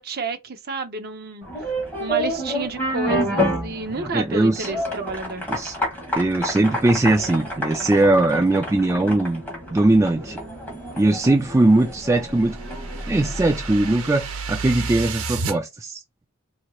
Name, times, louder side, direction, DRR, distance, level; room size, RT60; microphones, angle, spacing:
voice 1, 0.0-1.7 2.0-5.5, right 3 dB, 50° right, 0.7 m, -30 dB
sound 1, 1.4-14.2, equal, 10° left, 1.5 m, -29 dB
voice 2, 4.0-4.7 5.5-5.7 6.2-9.4 9.7-10.4 11.0-12.6 13.1-16.0, right 2 dB, 15° right, 0.3 m, -20 dB
sound 2, 11.5-15.6, right 3 dB, 85° right, 0.8 m, -31 dB
4.2 x 2.9 x 2.3 m
head